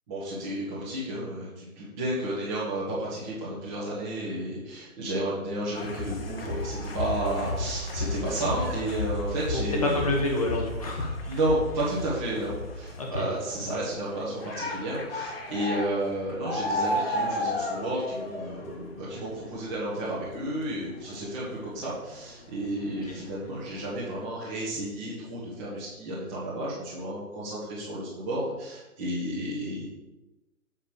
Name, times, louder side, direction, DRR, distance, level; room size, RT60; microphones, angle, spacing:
voice 1, 0.1-10.1 11.2-29.9, right 1 dB, 20° right, -9 dB, 1.7 m, -32 dB
sound 1, 5.7-22.5 22.8-24.2, left 1 dB, 40° left, 1.3 m, -34 dB
voice 2, 9.5-11.4 13.0-13.2 23.1-23.2, left 2 dB, 25° left, 0 dB, 0.9 m, -28 dB
8.0 x 5.7 x 5.0 m, 1.0 s
figure-of-eight pair, 145°, 43 cm